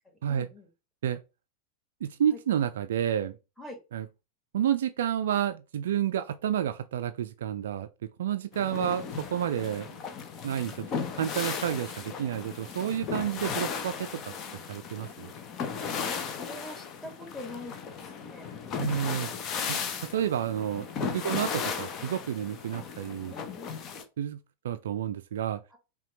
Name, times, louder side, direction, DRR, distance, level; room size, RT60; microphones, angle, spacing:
voice 1, 0.3-0.7 2.3-2.4 3.6-3.8 9.6-9.7 15.9-18.5 21.3-21.4 23.3-24.0 25.7-25.8, left 2 dB, 5° left, 1.7 m, -44 dB
voice 2, 2.0-3.4 3.9-4.1 4.5-9.9 10.4-10.9 11.2-14.3 14.7-15.3 18.8-19.3 19.7-19.8 20.1-23.3 24.2-25.6, right 9 dB, 60° right, 0.3 m, -30 dB
sound 1, 8.5-24.0, left 6 dB, 35° left, 0.7 m, -36 dB
5.6 x 2.3 x 3.0 m
figure-of-eight pair, 90°, 0 cm